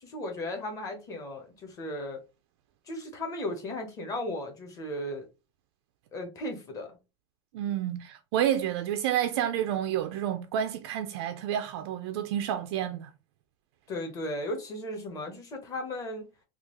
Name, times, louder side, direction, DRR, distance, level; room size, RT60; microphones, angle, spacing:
voice 1, 0.0-2.2 2.9-5.2 6.1-6.9 13.9-16.3, left 1 dB, 20° left, 0.8 m, -36 dB
voice 2, 7.5-13.1, right 10 dB, 60° right, 0.4 m, -29 dB
3.6 x 2.3 x 3.0 m
supercardioid pair, 165°, 15 cm